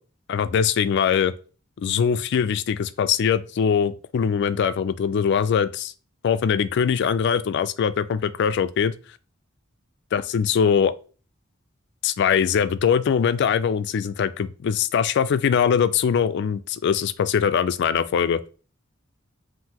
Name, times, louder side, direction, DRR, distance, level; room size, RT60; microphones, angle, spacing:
voice 1, 0.3-1.3 1.8-5.9 6.2-8.9 10.1-10.9 12.0-18.4, left 7 dB, 55° left, 0.3 m, -22 dB
5.5 x 2.6 x 2.9 m
head